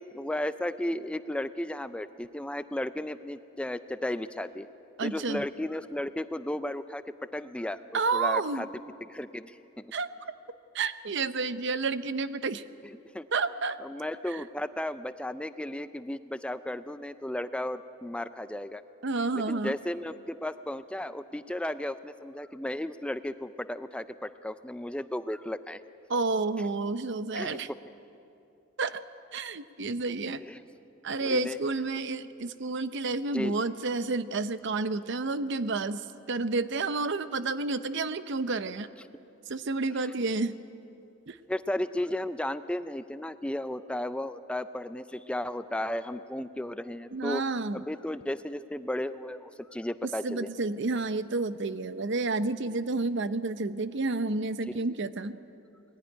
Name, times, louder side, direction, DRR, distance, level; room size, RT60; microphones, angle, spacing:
voice 1, 0.1-4.7 5.0-7.0 7.3-7.8 8.1-8.7 9.1-9.9 13.1-13.3 13.8-18.8 19.5-25.8 27.3-27.6 30.4-30.6 31.2-31.6 33.3-33.6 41.5-47.4 47.7-50.5 54.7-54.8, left 1 dB, 5° left, 12 dB, 0.4 m, -34 dB
voice 2, 5.0-5.5 7.9-8.6 9.9-10.1 10.7-12.6 13.3-13.8 14.3-14.4 19.0-19.8 26.1-27.7 28.8-29.0 29.3-30.4 31.0-38.9 39.5-40.6 41.3-41.4 47.1-47.8 50.2-55.4, right 3 dB, 60° right, 12 dB, 0.7 m, -30 dB
20.5 x 15.0 x 10.0 m, 2.7 s
head